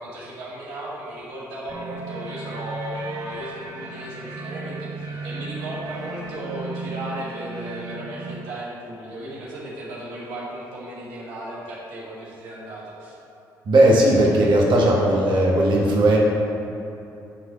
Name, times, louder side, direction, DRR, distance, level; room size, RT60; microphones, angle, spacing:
voice 1, 0.0-13.1, right 1 dB, 80° right, -6 dB, 1.5 m, -35 dB
sound 1, 1.7-8.4, right 3 dB, 40° right, 1.1 m, -35 dB
voice 2, 13.7-16.2, right 1 dB, 55° right, -3 dB, 1.4 m, -17 dB
8.8 x 4.0 x 5.1 m, 2.8 s
hypercardioid pair, 50°, 10 cm